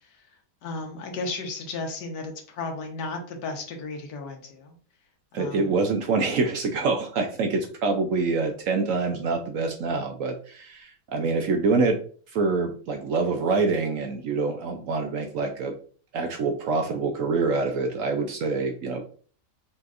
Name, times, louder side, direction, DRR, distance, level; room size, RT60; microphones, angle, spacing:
voice 1, 0.6-4.7 5.3-5.7, left 3 dB, 85° left, 3 dB, 1.5 m, -34 dB
voice 2, 5.3-12.0 12.3-15.7 16.1-19.0, right 4 dB, 65° right, 4 dB, 0.8 m, -26 dB
5.4 x 3.1 x 2.4 m, 0.44 s
omnidirectional pair, 1.7 m